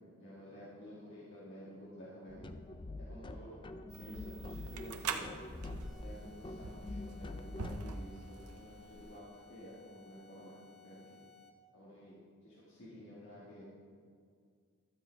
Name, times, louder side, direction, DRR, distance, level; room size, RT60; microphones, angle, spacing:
voice 1, 0.2-2.5 3.0-3.6 3.9-5.3 6.0-10.6 10.8-11.2 11.7-12.2 12.4-13.7, equal, 55° left, -8 dB, 2.1 m, -51 dB
sound 1, 2.3-8.0, left 2 dB, 20° left, 0.4 m, -46 dB
sound 2, 3.9-9.2, right 5 dB, 90° right, 0.8 m, -44 dB
sound 3, 5.8-11.7, left 6 dB, ahead, 0.8 m, -61 dB
12.5 x 7.9 x 4.7 m, 2.1 s
head